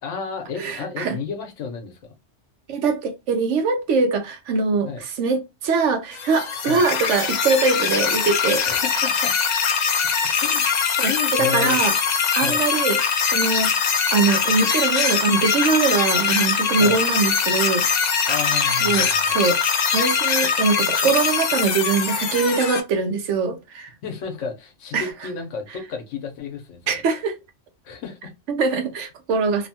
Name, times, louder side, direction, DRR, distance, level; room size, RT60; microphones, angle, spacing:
voice 1, 0.0-2.1 4.8-5.0 6.7-6.8 8.6-9.3 10.4-10.6 11.0-11.8 12.4-12.6 16.8-17.0 18.3-19.4 24.0-27.0 27.8-28.3, left 5 dB, 90° left, 1.1 m, -32 dB
voice 2, 0.6-1.1 2.7-8.6 11.0-11.9 12.3-13.0 13.3-17.8 18.8-19.6 19.9-23.9 24.9-25.1 26.9-27.3 28.5-29.7, right 4 dB, 80° right, 1.0 m, -22 dB
sound 1, 6.1-22.8, left 6 dB, 65° left, 0.4 m, -22 dB
2.9 x 2.1 x 2.7 m
omnidirectional pair, 1.2 m